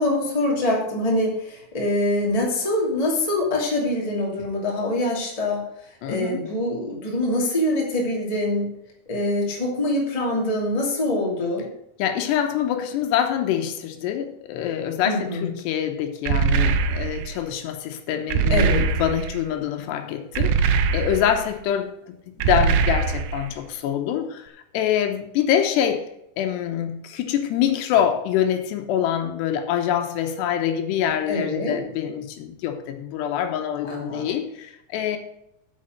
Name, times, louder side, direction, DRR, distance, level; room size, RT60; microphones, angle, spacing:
voice 1, 0.0-5.6 6.1-8.7 9.1-11.6 15.0-15.5 18.5-18.8 31.3-31.8 33.8-34.3, left 1 dB, 15° left, -2 dB, 1.6 m, -24 dB
voice 2, 6.0-6.5 12.0-26.1 26.4-35.2, left 9 dB, 80° left, 6 dB, 3.1 m, -25 dB
sound 1, 16.3-17.3 18.3-19.4 20.4-21.4 22.4-23.5, right 6 dB, 80° right, 2.6 m, -22 dB
8.6 x 7.3 x 6.5 m, 0.79 s
omnidirectional pair, 4.8 m